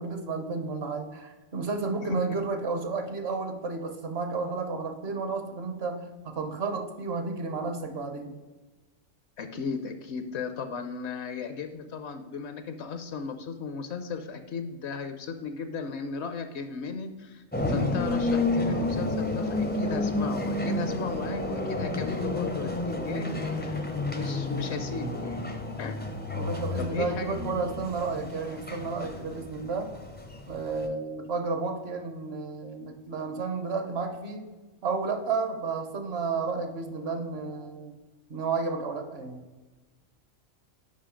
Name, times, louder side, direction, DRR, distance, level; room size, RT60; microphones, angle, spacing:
voice 1, 0.0-8.4 26.3-29.9 30.5-34.5 34.8-37.9 38.3-39.4, right 4 dB, 55° right, 6 dB, 0.9 m, -32 dB
voice 2, 9.4-25.4 25.8-26.0 26.8-27.7, left 5 dB, 65° left, 8 dB, 0.8 m, -35 dB
sound 1, 17.5-30.9, left 2 dB, 15° left, 0.3 m, -31 dB
5.7 x 5.4 x 4.9 m, 1.2 s
omnidirectional pair, 1.4 m